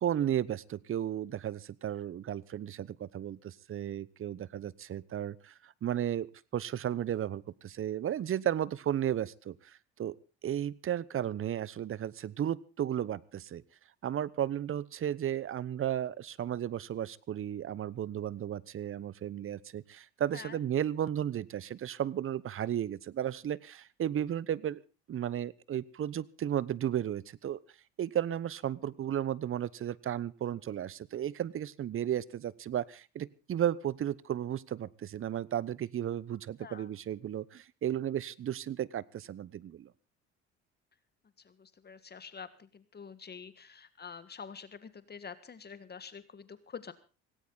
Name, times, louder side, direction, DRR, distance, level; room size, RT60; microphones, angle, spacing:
voice 1, 0.0-10.2 10.4-13.6 14.0-24.8 25.1-27.6 28.0-39.9, right 10 dB, 45° right, 22 dB, 1.0 m, -34 dB
voice 2, 41.4-46.9, left 6 dB, 30° left, 13 dB, 1.6 m, -47 dB
18.0 x 17.5 x 4.0 m, 0.34 s
supercardioid pair, 80°, 31 cm